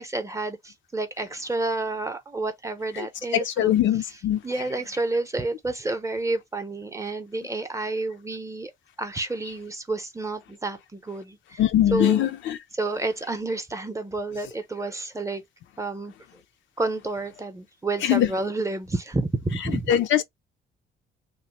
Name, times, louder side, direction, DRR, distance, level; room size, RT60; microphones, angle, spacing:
voice 1, 0.0-3.7 4.4-8.7 9.0-11.6 11.9-12.3 12.7-15.4 15.8-16.1 16.8-19.9, right 2 dB, 15° right, 0.6 m, -30 dB
voice 2, 3.3-4.4 11.6-12.6 18.0-18.3 19.9-20.2, left 11 dB, 75° left, 0.4 m, -21 dB
3.0 x 2.0 x 2.9 m
cardioid pair, 90°, 20 cm